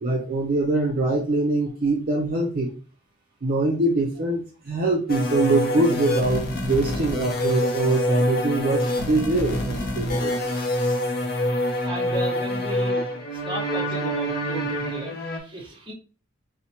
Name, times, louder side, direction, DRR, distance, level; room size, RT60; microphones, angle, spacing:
voice 1, 0.0-2.7 3.4-10.7, right 2 dB, 45° right, -1 dB, 0.5 m, -23 dB
sound 1, 5.1-15.4, left 1 dB, 45° left, 0.6 m, -26 dB
voice 2, 11.8-13.0 13.3-15.9, right 2 dB, 25° right, 0 dB, 0.8 m, -35 dB
4.3 x 2.1 x 2.8 m, 0.37 s
head